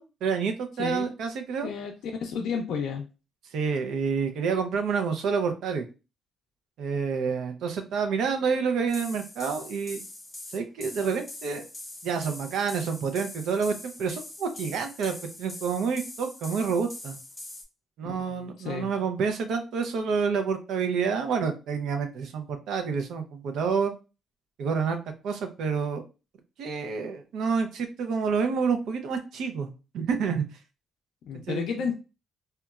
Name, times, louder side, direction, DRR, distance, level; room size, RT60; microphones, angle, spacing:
voice 1, 0.0-1.7 3.5-5.8 6.8-10.0 10.5-11.6 12.0-17.2 18.0-23.9 24.6-25.0 25.2-26.0 26.6-30.4 31.5-31.6, right 5 dB, 80° right, 6 dB, 0.5 m, -28 dB
voice 2, 1.6-1.9 2.2-3.1 18.0-18.9 31.3-31.9, left 6 dB, 75° left, 2 dB, 0.4 m, -32 dB
sound 1, 8.9-17.6, left 2 dB, 20° left, 0.6 m, -43 dB
2.9 x 2.2 x 2.3 m, 0.30 s
cardioid pair, 90°, 0 cm